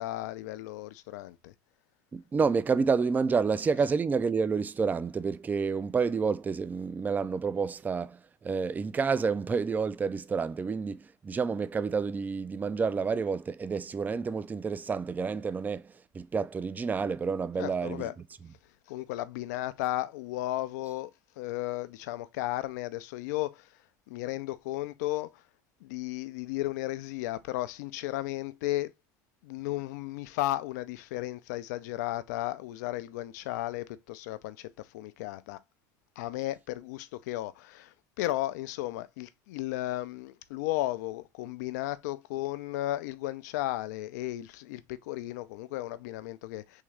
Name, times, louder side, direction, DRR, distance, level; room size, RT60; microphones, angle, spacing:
voice 1, 0.0-1.5 17.6-18.1 18.9-23.7 24.1-25.4 25.8-28.9 29.4-35.6 36.2-46.8, left 16 dB, 80° left, 0.4 m, -34 dB
voice 2, 2.1-18.1, right 5 dB, 20° right, 0.3 m, -29 dB
3.6 x 2.7 x 3.2 m
supercardioid pair, 90°, 9 cm